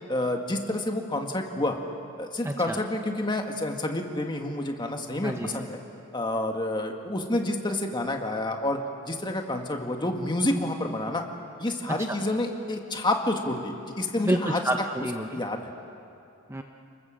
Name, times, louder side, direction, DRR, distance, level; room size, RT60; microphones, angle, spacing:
voice 1, 0.1-1.8 2.2-5.8 6.1-8.8 9.0-11.2 11.6-14.6 15.3-15.7, left 1 dB, 20° left, 3 dB, 1.9 m, -29 dB
voice 2, 2.4-2.8 5.2-5.6 12.1-12.2 14.2-15.4 16.5-16.6, right 1 dB, 10° right, 4 dB, 0.8 m, -29 dB
29.5 x 20.5 x 7.6 m, 2.5 s
head